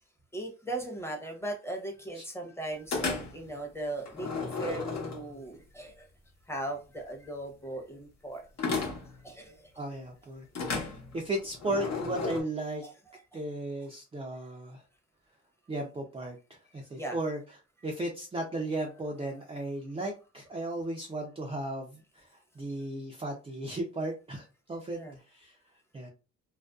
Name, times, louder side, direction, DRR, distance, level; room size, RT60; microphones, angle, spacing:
voice 1, 0.3-6.1 6.5-8.5 9.0-9.7 10.5-10.8 12.8-12.9 13.3-13.4 16.9-17.2 24.9-25.2, right 1 dB, 10° left, 3 dB, 0.8 m, -38 dB
sound 1, 2.9-3.5 4.1-5.5 8.6-9.2 10.5-12.4, left 4 dB, 60° left, 0.9 m, -33 dB
voice 2, 9.8-12.8 13.3-14.8 15.7-16.4 16.7-17.4 17.8-21.9 22.6-25.0 25.3-25.5 25.9-26.1, right 1 dB, 20° right, 0 dB, 0.4 m, -35 dB
2.4 x 2.2 x 2.3 m, 0.32 s
cardioid pair, 90°, 30 cm